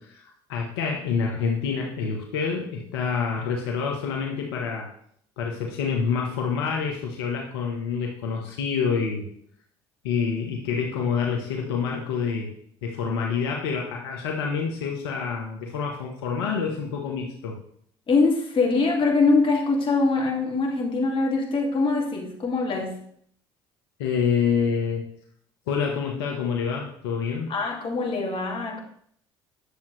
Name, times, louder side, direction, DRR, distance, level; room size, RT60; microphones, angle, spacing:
voice 1, 0.0-4.9 5.4-9.3 10.0-12.5 12.8-17.6 24.0-25.1 25.7-27.5, left 6 dB, 85° left, 1 dB, 1.2 m, -27 dB
voice 2, 18.1-22.9 27.5-28.8, left 3 dB, 45° left, 0 dB, 2.3 m, -23 dB
9.9 x 7.2 x 3.2 m, 0.64 s
hypercardioid pair, 65°, 13 cm